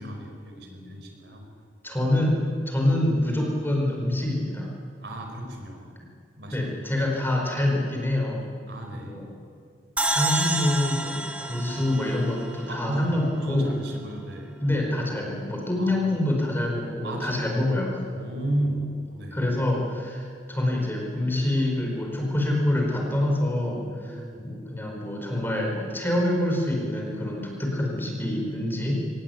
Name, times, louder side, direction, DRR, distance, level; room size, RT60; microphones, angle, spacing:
voice 1, 0.0-1.4 5.0-5.9 6.4-6.8 8.7-9.3 11.5-11.9 12.7-14.8 15.8-16.0 17.0-17.6 18.1-19.5 24.0-24.5, right 1 dB, 65° right, 3 dB, 4.9 m, -33 dB
voice 2, 0.6-1.0 1.8-4.7 6.5-8.4 8.9-9.3 10.1-11.2 11.5-13.7 14.6-18.0 19.3-28.9, left 1 dB, 10° left, 0 dB, 5.0 m, -26 dB
sound 1, 10.0-13.3, right 2 dB, 10° right, 1.7 m, -29 dB
23.5 x 18.5 x 9.3 m, 2.2 s
head